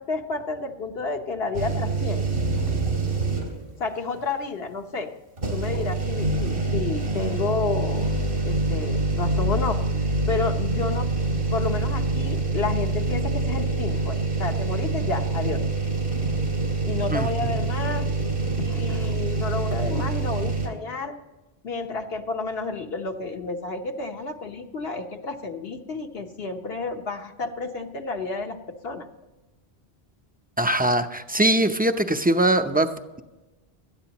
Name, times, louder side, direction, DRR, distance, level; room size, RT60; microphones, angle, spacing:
voice 1, 0.0-2.3 3.8-5.1 5.5-8.1 8.5-9.8 10.3-11.2 11.5-15.6 16.8-18.1 18.6-21.2 21.6-28.6 28.8-29.1, left 4 dB, 75° left, 4 dB, 1.4 m, -30 dB
sound 1, 1.5-3.7 4.1-4.2 5.4-20.7, right 3 dB, 85° right, 3.4 m, -25 dB
voice 2, 17.1-17.6 30.6-33.2, right 1 dB, 10° right, 7 dB, 0.5 m, -22 dB
18.0 x 13.0 x 3.0 m, 1.1 s
omnidirectional pair, 1.1 m